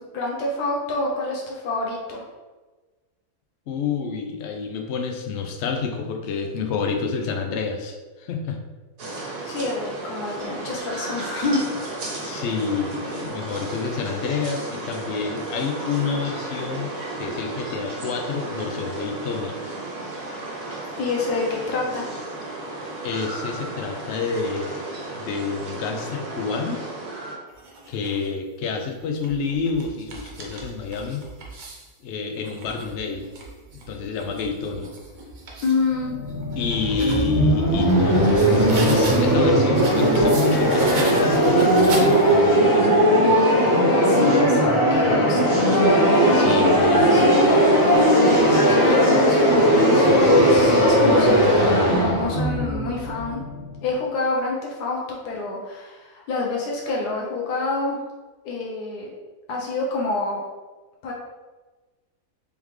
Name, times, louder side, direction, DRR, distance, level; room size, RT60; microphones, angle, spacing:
voice 1, 0.0-2.2 9.5-11.8 21.0-22.1 35.6-36.2 44.0-45.9 46.5-47.7 48.7-53.4 53.8-58.0 58.4-59.1 59.5-60.4 61.0-61.1, left 3 dB, 85° left, -2 dB, 1.3 m, -27 dB
voice 2, 3.7-8.6 12.2-16.9 17.2-19.6 23.0-24.8 25.1-26.8 27.9-31.3 32.0-33.3 33.7-34.9 36.6-43.1 46.3-47.3, left 5 dB, 65° left, 3 dB, 0.7 m, -28 dB
sound 1, 9.0-27.4, right 2 dB, 75° right, 1.5 m, -33 dB
sound 2, 27.5-28.3 29.0-31.9 32.4-35.8 36.3-39.3 39.7-42.5, right 2 dB, 55° right, 0.5 m, -37 dB
sound 3, 35.9-53.8, equal, 40° left, 1.3 m, -18 dB
3.6 x 3.5 x 3.1 m, 1.3 s
omnidirectional pair, 1.6 m